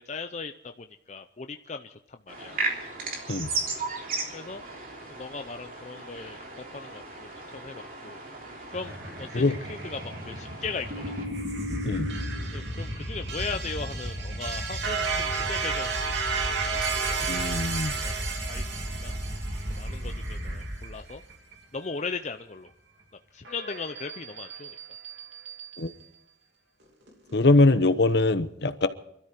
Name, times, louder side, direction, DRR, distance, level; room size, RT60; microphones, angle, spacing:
voice 1, 0.0-2.6 4.3-4.6 5.1-6.4 6.7-8.2 8.7-10.0 10.3-11.1 12.5-15.9 16.6-18.7 19.0-19.1 19.7-21.2 21.7-22.7 23.3-24.8, left 4 dB, 35° left, 7 dB, 0.6 m, -38 dB
sound 1, 2.3-11.2, right 3 dB, 50° right, 3.4 m, -36 dB
sound 2, 8.7-21.7 23.4-25.9 27.1-27.6, right 3 dB, 70° right, 2.9 m, -32 dB
voice 2, 17.3-17.9 25.8-25.9 27.3-28.9, left 2 dB, 60° left, 11 dB, 1.0 m, -22 dB
24.5 x 13.0 x 4.4 m, 0.77 s
head